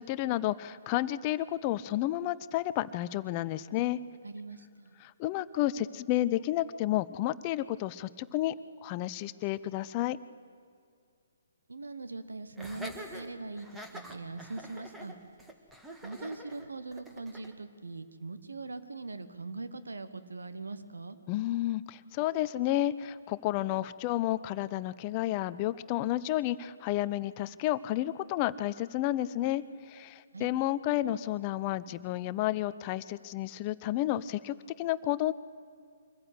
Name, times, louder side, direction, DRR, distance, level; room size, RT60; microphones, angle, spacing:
voice 1, 0.0-4.0 5.0-8.6 8.8-10.2 21.3-35.3, left 14 dB, 30° left, 16 dB, 0.5 m, -31 dB
voice 2, 4.2-5.0 11.7-15.2 16.0-21.2 30.3-30.5, right 3 dB, 75° right, 11 dB, 1.3 m, -41 dB
Laughter, 12.6-17.5, right 1 dB, 5° right, 1.7 m, -46 dB
24.0 x 15.0 x 8.2 m, 2.2 s
figure-of-eight pair, 130°, 0 cm